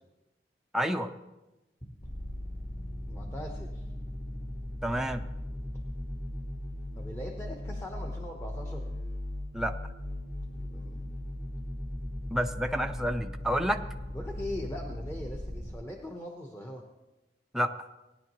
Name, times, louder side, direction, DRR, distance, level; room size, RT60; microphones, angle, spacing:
voice 1, 0.7-1.1 4.8-5.2 9.5-9.7 12.3-13.8 17.5-17.7, equal, 5° right, 4 dB, 0.5 m, -29 dB
sound 1, 2.0-15.7, left 1 dB, 50° left, 4.2 m, -38 dB
voice 2, 3.1-3.9 6.9-8.8 10.5-11.2 14.1-16.8, left 1 dB, 15° left, 0 dB, 1.0 m, -41 dB
18.5 x 10.5 x 3.0 m, 1.0 s
head